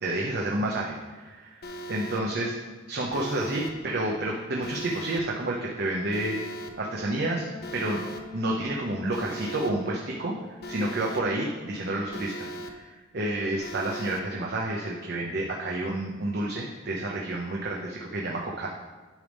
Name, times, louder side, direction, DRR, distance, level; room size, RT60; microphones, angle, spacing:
voice 1, 0.0-2.5 2.9-6.4 6.8-7.5 7.7-8.0 8.3-10.3 10.7-18.7, right 1 dB, 55° right, -2 dB, 0.8 m, -30 dB
Alarm, 1.6-2.2 3.1-3.7 4.6-5.2 6.1-6.7 7.6-8.2 9.1-9.7 10.6-11.2 12.1-12.7 13.6-14.2, right 1 dB, 55° left, 0.6 m, -38 dB
Wind instrument woodwind instrument, 7.2-12.7, left 3 dB, 20° left, 1.5 m, -47 dB
10.0 x 3.5 x 5.3 m, 1.4 s
head